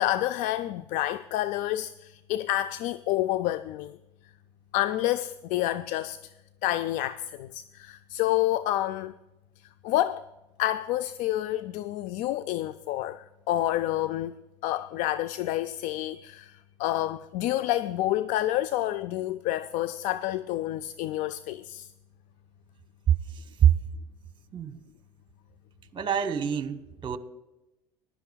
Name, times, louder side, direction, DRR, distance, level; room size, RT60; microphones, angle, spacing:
voice 1, 0.0-4.0 4.7-6.3 6.6-9.1 9.8-10.3 10.6-14.4 14.6-21.9, left 14 dB, 60° left, 0.4 m, -29 dB
voice 2, 23.1-23.8 24.5-24.8 25.9-27.2, right 9 dB, 35° right, 1.1 m, -25 dB
20.0 x 11.0 x 2.3 m
hypercardioid pair, 75°, 15 cm